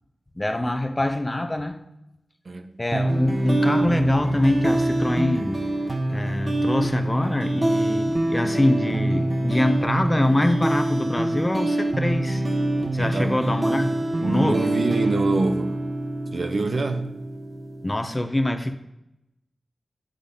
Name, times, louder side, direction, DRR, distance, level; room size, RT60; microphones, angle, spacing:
voice 1, 0.3-1.8 2.8-5.6 6.1-12.4 12.9-14.7 17.8-18.8, left 1 dB, 25° left, 0.8 m, -24 dB
voice 2, 2.4-2.8 13.0-13.5 14.2-15.8 16.3-17.2, right 3 dB, 65° right, 0.8 m, -25 dB
sound 1, 2.9-17.9, right 1 dB, 40° right, 1.0 m, -25 dB
10.0 x 4.1 x 5.1 m
wide cardioid pair, 65°, 0 cm